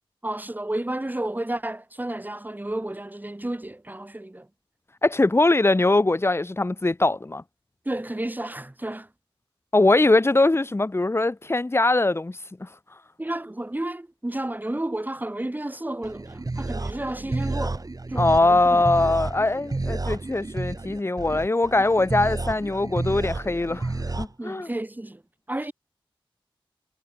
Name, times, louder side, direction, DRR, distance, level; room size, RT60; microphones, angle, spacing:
voice 1, 0.2-4.5 7.8-9.1 13.2-18.8 24.4-25.2 25.5-25.7, right 1 dB, 20° right, 2.8 m, -31 dB
voice 2, 5.0-7.4 9.7-12.7 18.2-24.7, left 2 dB, 25° left, 1.3 m, -22 dB
sound 1, 16.0-24.3, right 2 dB, 40° right, 6.7 m, -31 dB
cardioid pair, 60°, 10 cm